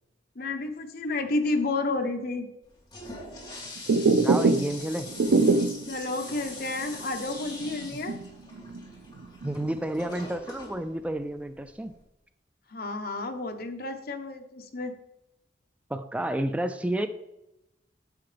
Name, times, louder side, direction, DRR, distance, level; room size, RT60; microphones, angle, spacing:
voice 1, 0.4-2.5 5.9-8.2 12.7-14.9, left 2 dB, 55° left, 6 dB, 1.0 m, -31 dB
Toilet flush, 2.6-12.0, left 2 dB, 25° left, 2.6 m, -43 dB
sound 1, 3.8-4.8 5.1-5.9 6.3-6.4 6.8-6.9 7.4-8.8 9.2-9.8, right 3 dB, 75° right, 0.4 m, -23 dB
voice 2, 4.2-5.1 9.4-11.9 15.9-17.1, right 1 dB, 5° right, 9 dB, 0.3 m, -30 dB
9.3 x 7.6 x 3.4 m, 0.89 s
head